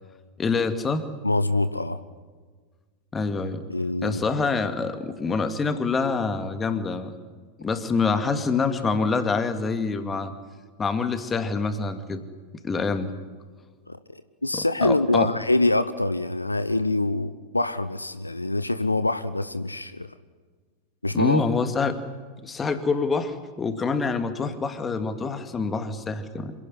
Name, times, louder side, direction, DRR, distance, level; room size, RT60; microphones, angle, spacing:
voice 1, 0.4-1.1 3.1-3.6 4.0-7.1 7.6-10.3 10.8-12.2 12.6-13.1 14.5-15.3 21.1-22.0 22.4-26.5, left 4 dB, 20° left, 9 dB, 2.2 m, -26 dB
voice 2, 1.2-2.0 3.7-4.2 13.9-20.1 21.0-21.4, left 2 dB, 85° left, 13 dB, 1.0 m, -25 dB
26.5 x 17.0 x 10.0 m, 1.5 s
figure-of-eight pair, 90°, 0 cm